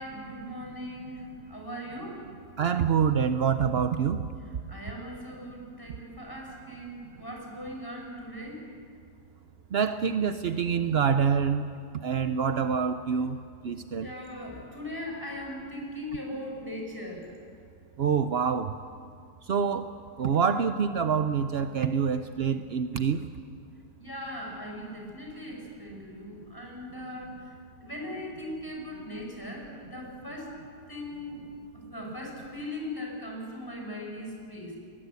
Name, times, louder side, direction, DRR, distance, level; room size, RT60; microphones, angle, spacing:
voice 1, 0.0-2.3 4.7-8.6 14.0-17.4 24.0-30.6 30.9-31.4 31.7-34.8, left 1 dB, 10° left, 0 dB, 5.4 m, -39 dB
voice 2, 2.6-4.3 9.7-11.6 12.0-14.1 18.0-18.8 19.4-23.3, right 7 dB, 80° right, 10 dB, 0.5 m, -26 dB
21.5 x 20.0 x 8.3 m, 2.3 s
omnidirectional pair, 1.9 m